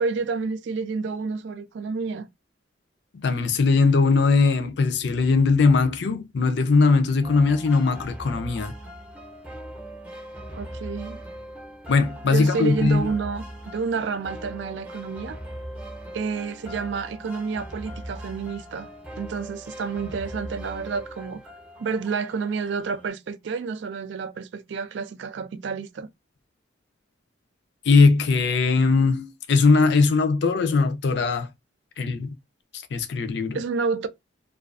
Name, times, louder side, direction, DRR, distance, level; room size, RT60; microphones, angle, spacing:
voice 1, 0.0-2.3 10.5-11.2 12.3-13.4 13.7-15.4 16.1-21.4 21.8-26.1 33.5-34.1, right 5 dB, 70° right, 0.4 m, -29 dB
voice 2, 3.2-8.7 11.9-13.1 27.9-31.5 32.0-32.3 32.9-33.6, left 4 dB, 60° left, 0.4 m, -20 dB
sound 1, 7.2-23.1, equal, 5° right, 0.6 m, -40 dB
2.3 x 2.3 x 2.4 m
head